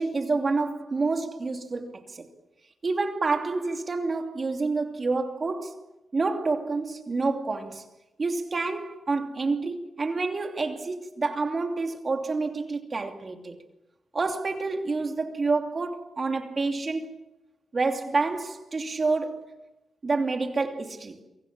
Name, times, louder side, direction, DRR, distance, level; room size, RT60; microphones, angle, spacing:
voice 1, 0.0-2.3 2.8-5.8 6.1-7.8 8.2-13.6 14.1-17.1 17.7-19.6 20.0-21.2, right 3 dB, 30° right, 2.9 m, -28 dB
29.0 x 24.5 x 7.4 m
wide cardioid pair, 140°, 0 cm